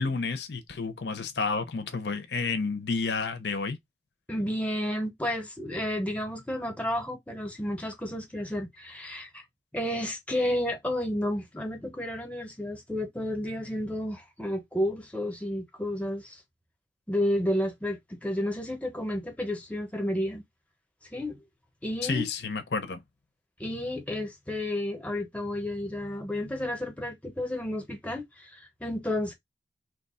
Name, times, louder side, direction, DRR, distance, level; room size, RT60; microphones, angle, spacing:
voice 1, 0.0-3.8 22.0-23.0, left 4 dB, 75° left, 0.7 m, -30 dB
voice 2, 4.3-9.4 9.7-16.4 17.1-20.4 21.1-21.4 21.8-22.3 23.6-29.3, left 1 dB, 10° left, 0.7 m, -31 dB
2.9 x 2.2 x 4.2 m
head